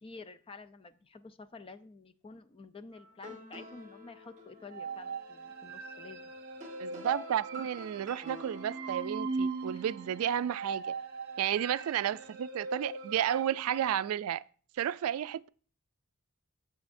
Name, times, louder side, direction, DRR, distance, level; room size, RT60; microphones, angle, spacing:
voice 1, 0.0-6.3 9.6-9.9, left 3 dB, 25° left, 0.5 m, -50 dB
sound 1, 2.9-9.0, right 1 dB, 35° right, 1.4 m, -47 dB
sound 2, 4.7-14.0, right 4 dB, 50° right, 1.0 m, -40 dB
voice 2, 6.8-10.9 11.4-14.4 14.8-15.5, right 10 dB, 85° right, 0.3 m, -32 dB
10.5 x 7.1 x 2.6 m
head